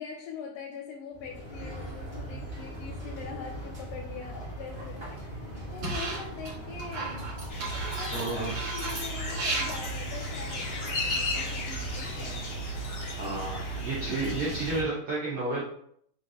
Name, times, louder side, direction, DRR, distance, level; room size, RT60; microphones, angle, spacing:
voice 1, 0.0-7.2 7.7-12.4, left 6 dB, 85° left, 0 dB, 2.3 m, -43 dB
sound 1, 1.1-14.8, right 1 dB, 25° right, 0.5 m, -40 dB
sound 2, 5.8-6.5 6.8-11.1, right 2 dB, 50° right, 2.2 m, -35 dB
sound 3, 7.5-14.8, equal, 65° left, 1.3 m, -35 dB
voice 2, 8.1-8.5 13.2-15.6, right 3 dB, 75° right, -7 dB, 1.4 m, -31 dB
5.6 x 3.2 x 2.6 m, 0.68 s
omnidirectional pair, 3.9 m